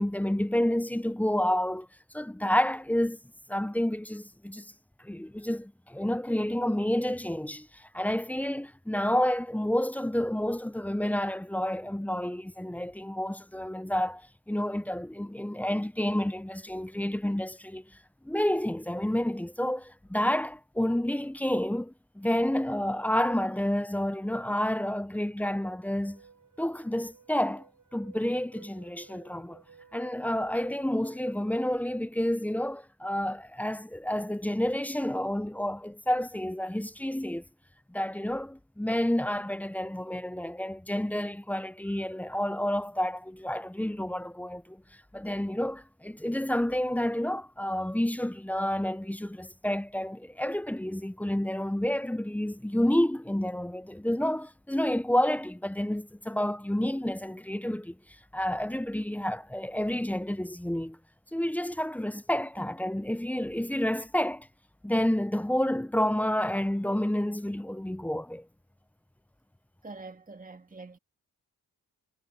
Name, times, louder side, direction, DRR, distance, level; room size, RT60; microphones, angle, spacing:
voice 1, 0.0-1.9 2.1-3.2 3.5-4.7 5.0-14.2 14.5-17.9 18.2-26.2 26.6-27.7 27.9-29.6 29.9-37.4 37.9-44.8 45.1-58.0 58.3-61.0 61.3-64.5 64.8-68.5, left 1 dB, 5° left, 0.6 m, -29 dB
sound 1, 25.8-31.8, right 6 dB, 55° right, 5.6 m, -57 dB
voice 2, 69.8-71.0, right 3 dB, 20° right, 2.1 m, -45 dB
cardioid pair, 65°, 38 cm